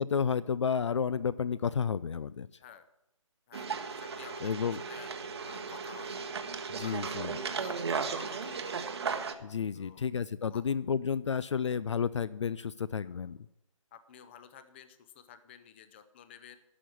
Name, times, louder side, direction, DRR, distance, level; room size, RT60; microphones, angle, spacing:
voice 1, 0.0-2.5 4.4-4.8 6.7-7.4 9.4-13.4, left 6 dB, 60° left, 18 dB, 0.4 m, -31 dB
voice 2, 3.5-5.1 5.4-6.3 6.8-7.2 7.6-8.9 9.7-10.1 10.5-10.6 13.9-16.6, left 8 dB, 20° left, 11 dB, 0.6 m, -52 dB
sound 1, 3.5-9.3, right 5 dB, 50° right, 1.1 m, -36 dB
11.5 x 6.2 x 8.3 m, 0.86 s
figure-of-eight pair, 150°, 17 cm